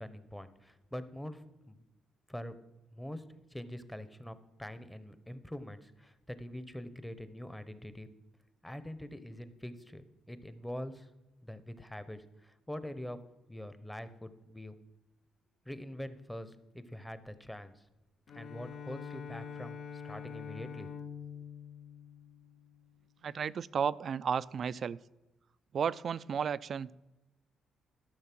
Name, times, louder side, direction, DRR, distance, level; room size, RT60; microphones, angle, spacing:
voice 1, 0.0-1.8 2.3-2.5 2.9-3.2 3.5-8.1 8.6-11.1 11.4-13.2 13.5-14.7 15.7-17.8 18.3-20.9, left 1 dB, 5° left, 12 dB, 0.8 m, -44 dB
Bowed string instrument, 18.3-22.9, left 7 dB, 65° left, 0.8 m, -45 dB
voice 2, 23.2-25.0 25.7-26.9, right 7 dB, 55° right, 18 dB, 0.3 m, -33 dB
13.0 x 6.5 x 6.0 m, 0.99 s
cardioid pair, 90°, 0 cm